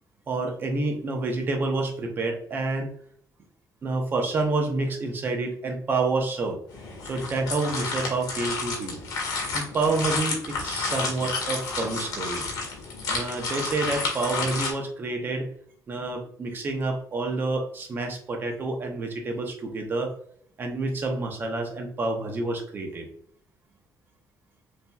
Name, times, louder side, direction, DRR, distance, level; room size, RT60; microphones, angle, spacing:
voice 1, 0.3-3.0 3.8-6.6 7.0-9.0 9.5-12.4 13.1-15.5 15.9-20.1 20.6-23.1, right 3 dB, 30° right, 2 dB, 0.9 m, -28 dB
sound 1, 6.7-14.7, left 4 dB, 70° left, 1.8 m, -31 dB
6.9 x 3.0 x 2.4 m, 0.62 s
cardioid pair, 175°, 7 cm